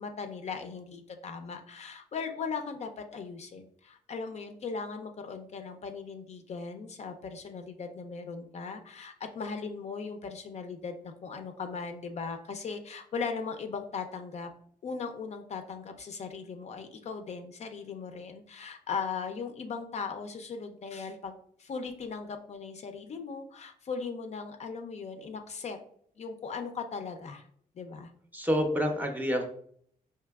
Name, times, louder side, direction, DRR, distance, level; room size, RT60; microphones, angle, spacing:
voice 1, 0.0-14.5 14.8-25.8 26.2-27.5 27.8-28.1, left 5 dB, 45° left, 6 dB, 0.4 m, -38 dB
voice 2, 28.3-29.4, equal, 10° right, 3 dB, 0.6 m, -28 dB
4.7 x 2.8 x 2.3 m, 0.63 s
cardioid pair, 115°, 16 cm